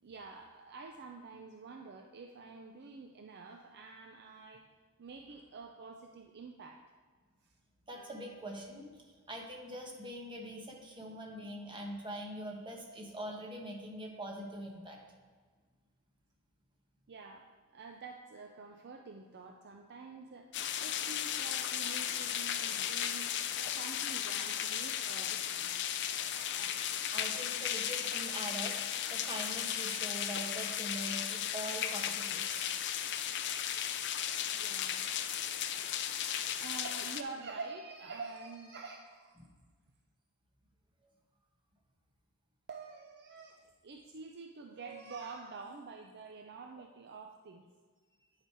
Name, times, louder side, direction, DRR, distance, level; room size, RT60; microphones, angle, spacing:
voice 1, 0.0-4.7 5.0-6.8 17.1-17.5 17.7-23.3 23.6-25.9 34.5-35.3 35.6-35.7 36.5-39.4 42.7-47.7, right 4 dB, 50° right, 3 dB, 0.5 m, -48 dB
voice 2, 7.9-15.0 26.5-26.7 27.1-28.8 29.1-32.7, right 1 dB, 20° right, 1 dB, 1.2 m, -43 dB
sound 1, 20.5-37.2, left 10 dB, 55° left, 0.5 m, -35 dB
10.5 x 5.0 x 4.5 m, 1.5 s
head